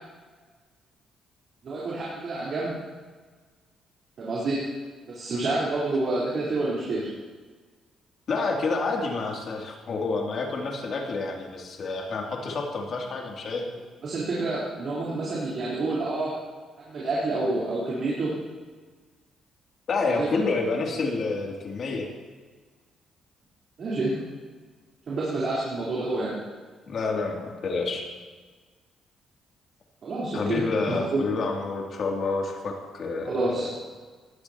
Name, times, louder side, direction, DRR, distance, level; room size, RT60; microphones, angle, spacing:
voice 1, 1.6-2.7 4.2-4.6 5.1-7.1 14.0-16.3 16.9-18.3 20.0-20.3 23.8-24.1 25.1-26.3 30.0-30.6 30.9-31.2 33.2-33.7, right 2 dB, 55° right, -7 dB, 3.9 m, -28 dB
voice 2, 8.3-13.7 19.9-22.1 26.9-28.0 30.3-33.4, left 3 dB, 55° left, -1 dB, 2.7 m, -28 dB
18.5 x 12.5 x 2.9 m, 1.4 s
cardioid pair, 90°, 0 cm